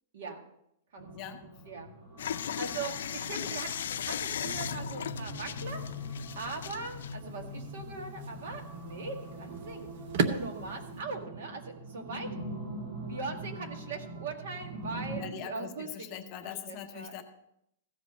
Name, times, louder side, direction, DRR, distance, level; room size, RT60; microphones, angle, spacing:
sound 1, 1.0-15.2, equal, 25° right, 2.4 m, -43 dB
sound 2, 2.2-7.2, left 9 dB, 80° left, 0.4 m, -37 dB
voice 1, 2.6-3.7 4.0-5.8 6.4-9.9 10.2-12.3 13.1-16.1 16.7-17.2, right 4 dB, 65° right, 4 dB, 2.0 m, -40 dB
sound 3, 3.6-11.0, right 5 dB, 45° right, 0.7 m, -39 dB
voice 2, 15.1-17.2, left 9 dB, 25° left, 6 dB, 0.7 m, -42 dB
15.0 x 5.2 x 5.3 m, 0.78 s
supercardioid pair, 175°, 0 cm